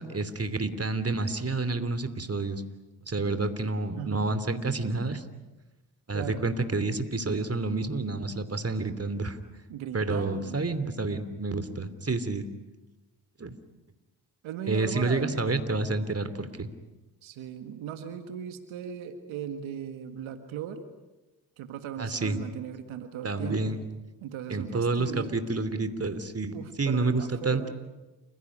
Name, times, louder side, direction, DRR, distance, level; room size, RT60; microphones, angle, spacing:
voice 1, 0.0-2.6 3.0-5.2 6.1-9.4 9.9-12.5 13.4-13.5 14.7-16.7 22.0-22.4 23.2-23.8 24.5-27.6, right 3 dB, 30° right, 11 dB, 3.0 m, -29 dB
voice 2, 3.9-4.5 6.1-6.5 9.7-10.6 14.4-15.4 17.2-20.8 21.6-23.8 24.2-25.4 26.5-27.7, right 8 dB, 90° right, 8 dB, 1.8 m, -38 dB
29.0 x 16.5 x 9.8 m, 1.1 s
supercardioid pair, 50°, 46 cm